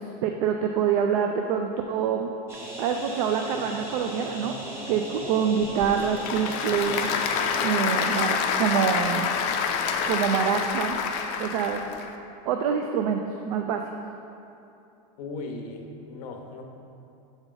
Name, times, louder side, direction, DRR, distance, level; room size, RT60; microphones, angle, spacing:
voice 1, 0.0-2.3 2.8-4.5 4.9-7.1 7.6-9.3 10.1-11.0 11.4-11.8 12.5-13.8, right 7 dB, 75° right, 4 dB, 0.4 m, -26 dB
sound 1, 2.5-7.5, equal, 15° right, 0.9 m, -38 dB
Applause / Crowd, 5.6-12.1, left 6 dB, 40° left, 0.4 m, -27 dB
voice 2, 15.2-16.6, left 3 dB, 80° left, 3 dB, 0.8 m, -37 dB
6.8 x 4.3 x 3.9 m, 2.8 s
supercardioid pair, 165°, 19 cm